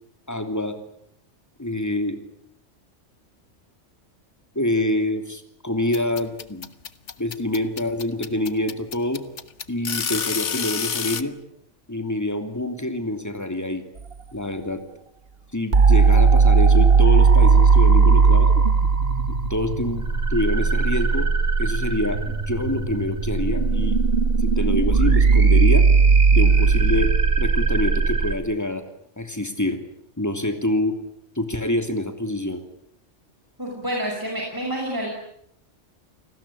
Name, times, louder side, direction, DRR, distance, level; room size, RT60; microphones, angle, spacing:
voice 1, 0.3-0.8 1.6-2.2 4.5-6.7 7.2-9.2 9.7-11.3 11.9-13.8 14.3-14.8 15.5-18.5 19.3-21.3 21.6-24.0 24.4-25.9 26.3-28.8 29.2-29.8 30.2-31.0 31.4-32.6, left 1 dB, 15° left, 7 dB, 3.0 m, -26 dB
sound 1, 5.9-11.2, left 6 dB, 75° left, 1.6 m, -28 dB
sound 2, 15.7-28.3, right 5 dB, 55° right, 1.9 m, -17 dB
voice 2, 33.6-35.1, right 1 dB, 15° right, -1 dB, 6.0 m, -28 dB
29.5 x 20.0 x 8.6 m, 0.72 s
omnidirectional pair, 1.2 m